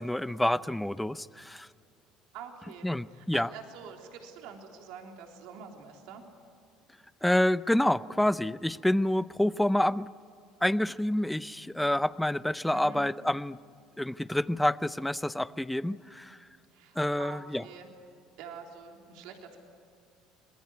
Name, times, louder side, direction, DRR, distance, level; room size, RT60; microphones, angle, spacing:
voice 1, 0.0-1.7 2.8-3.5 7.2-10.1 10.6-13.6 14.0-16.4 17.0-17.6, left 1 dB, 5° left, 16 dB, 0.6 m, -28 dB
voice 2, 2.3-6.2 12.7-13.0 16.7-17.9 18.4-19.6, right 6 dB, 75° right, 3 dB, 3.5 m, -46 dB
26.0 x 20.5 x 9.7 m, 2.4 s
supercardioid pair, 110°, 0 cm